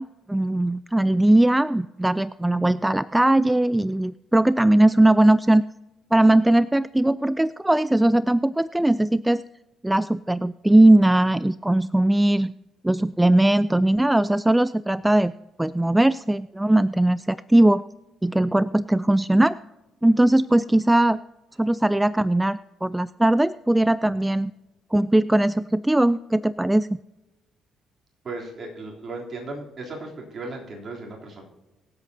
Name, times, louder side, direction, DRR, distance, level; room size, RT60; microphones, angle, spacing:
voice 1, 0.0-5.6 6.1-9.4 9.8-12.5 12.8-15.3 15.6-17.8 18.2-19.6 20.0-21.2 21.6-24.5 24.9-26.9, right 1 dB, 10° right, 18 dB, 0.3 m, -19 dB
voice 2, 28.2-31.5, right 2 dB, 45° right, 0 dB, 3.3 m, -36 dB
23.5 x 8.0 x 2.8 m, 1.1 s
hypercardioid pair, 50°, 0 cm